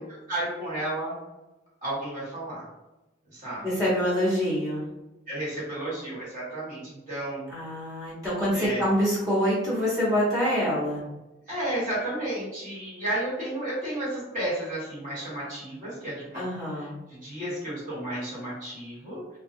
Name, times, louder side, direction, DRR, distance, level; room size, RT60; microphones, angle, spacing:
voice 1, 0.3-1.2 1.8-2.6 3.3-3.6 5.3-7.5 8.5-8.8 11.5-16.4 16.7-19.4, right 1 dB, 45° right, -9 dB, 1.5 m, -32 dB
voice 2, 3.6-4.8 7.5-11.0 16.3-16.9, equal, 20° right, -9 dB, 1.1 m, -26 dB
2.3 x 2.2 x 2.7 m, 1.0 s
head